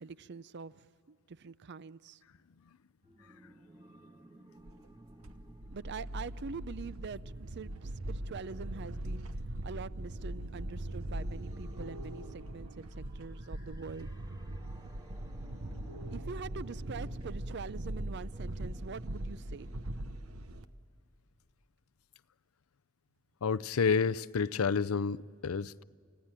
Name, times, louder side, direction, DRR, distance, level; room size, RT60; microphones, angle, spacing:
voice 1, 0.0-0.7 1.1-2.2 5.7-9.3 9.6-14.1 16.1-19.7, right 5 dB, 55° right, 0.5 m, -44 dB
sound 1, 3.0-20.6, right 1 dB, 20° right, 1.6 m, -58 dB
sound 2, 4.7-20.6, right 1 dB, 85° right, 1.0 m, -41 dB
voice 2, 15.5-16.1 23.4-25.8, left 5 dB, 85° left, 0.5 m, -31 dB
29.5 x 16.5 x 9.0 m
head